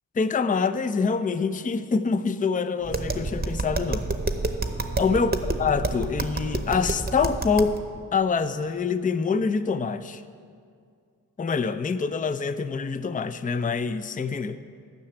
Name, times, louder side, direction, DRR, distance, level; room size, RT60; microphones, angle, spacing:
voice 1, 0.2-4.1 5.0-7.8 8.1-10.2 11.4-14.6, left 5 dB, 20° left, 12 dB, 0.4 m, -25 dB
Tap, 2.8-7.8, right 2 dB, 25° right, 0.8 m, -29 dB
12.0 x 5.8 x 7.8 m, 2.2 s
cardioid pair, 45°, 38 cm